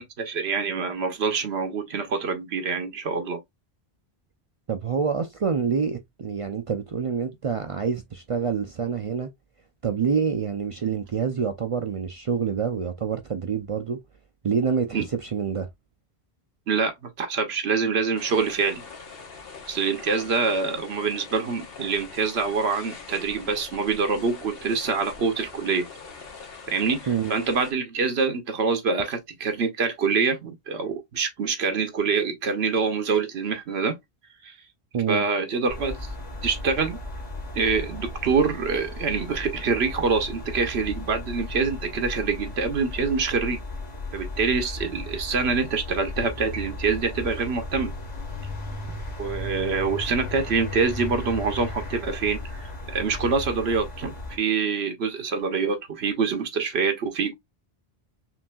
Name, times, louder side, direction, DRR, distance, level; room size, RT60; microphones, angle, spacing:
voice 1, 0.0-3.4 14.9-15.0 16.7-18.8 19.7-25.9 26.7-34.0 34.4-34.5 35.1-36.0 36.4-37.0 37.5-43.6 44.1-48.0 49.2-57.3, right 5 dB, 85° right, 1.2 m, -25 dB
voice 2, 4.7-9.3 9.8-14.0 14.4-15.7 27.1-27.3 34.9-35.2, right 6 dB, 50° right, 0.4 m, -27 dB
sound 1, 18.2-27.7, left 4 dB, 65° left, 1.2 m, -43 dB
sound 2, 35.7-54.4, left 2 dB, 40° left, 1.4 m, -35 dB
5.8 x 2.6 x 2.2 m
omnidirectional pair, 1.0 m